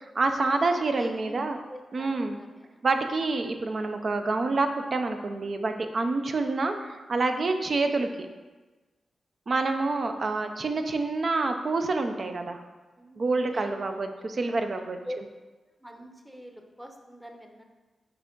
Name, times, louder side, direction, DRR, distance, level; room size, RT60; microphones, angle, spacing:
voice 1, 0.0-1.6 1.9-2.4 2.8-8.3 9.5-12.6 13.2-15.0, right 3 dB, 55° right, 6 dB, 0.5 m, -27 dB
voice 2, 0.5-1.4 1.7-2.8 13.0-13.7 14.4-14.7 15.0-15.2 15.8-17.6, equal, 10° right, 3 dB, 0.8 m, -43 dB
6.0 x 4.5 x 3.8 m, 1.2 s
cardioid pair, 65°, 0 cm